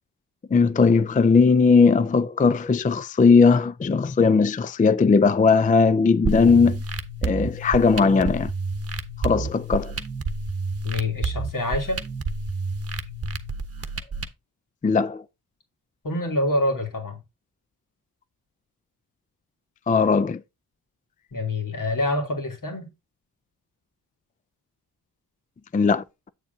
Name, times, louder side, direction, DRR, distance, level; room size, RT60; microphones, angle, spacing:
voice 1, 0.5-6.8 7.2-8.5 9.2-9.9 14.8-15.2 19.9-20.4 25.7-26.3, left 4 dB, 20° left, 0.4 m, -18 dB
sound 1, 6.2-14.2, right 3 dB, 35° right, 1.1 m, -30 dB
voice 2, 10.8-12.0 16.0-17.2 21.3-22.9, left 2 dB, 50° left, 2.9 m, -26 dB
8.2 x 7.0 x 2.7 m
cardioid pair, 70°, 40 cm